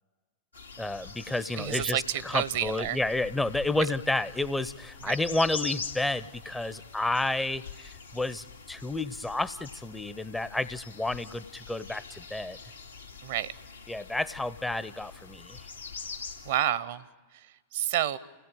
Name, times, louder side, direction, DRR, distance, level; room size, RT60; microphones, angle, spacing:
sound 1, 0.5-16.6, left 5 dB, 85° left, 2.1 m, -44 dB
voice 1, 0.8-12.6 13.9-15.7, left 2 dB, 5° left, 15 dB, 0.7 m, -31 dB
voice 2, 1.6-3.0 3.8-3.9 5.1-5.2 13.2-13.5 16.5-17.0 17.7-18.2, right 12 dB, 55° right, 18 dB, 0.9 m, -29 dB
29.5 x 17.5 x 9.0 m, 1.3 s
figure-of-eight pair, 90°, 0 cm